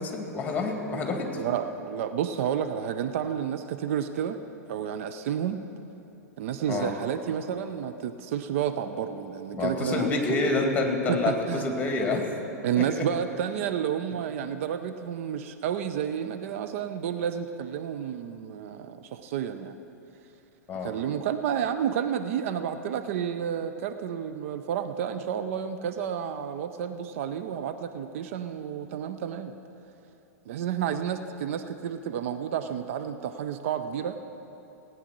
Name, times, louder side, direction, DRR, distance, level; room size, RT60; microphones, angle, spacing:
voice 1, 0.0-1.4 6.7-7.0 9.5-12.2 12.8-13.1 20.7-21.0, left 3 dB, 15° left, 3 dB, 2.2 m, -28 dB
voice 2, 1.3-4.4 4.7-5.6 6.4-10.4 11.1-11.7 12.6-19.8 20.8-29.5 30.5-34.2, right 9 dB, 55° right, 9 dB, 0.6 m, -30 dB
17.5 x 9.2 x 6.1 m, 3.0 s
figure-of-eight pair, 100°, 9 cm